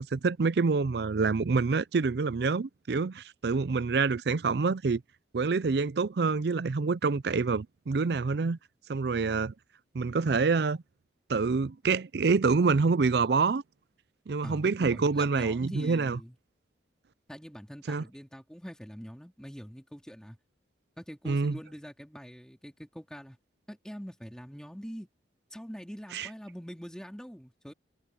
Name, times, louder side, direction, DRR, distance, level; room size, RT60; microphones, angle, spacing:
voice 1, 0.0-5.0 5.3-8.6 8.9-9.5 9.9-10.8 11.3-13.6 14.3-16.2 17.9-18.0 21.3-21.6 26.1-26.3, right 4 dB, 60° right, 0.5 m, -27 dB
voice 2, 14.4-16.4 17.3-20.4 21.0-23.4 23.7-25.1 25.5-27.7, equal, 5° left, 3.6 m, -44 dB
head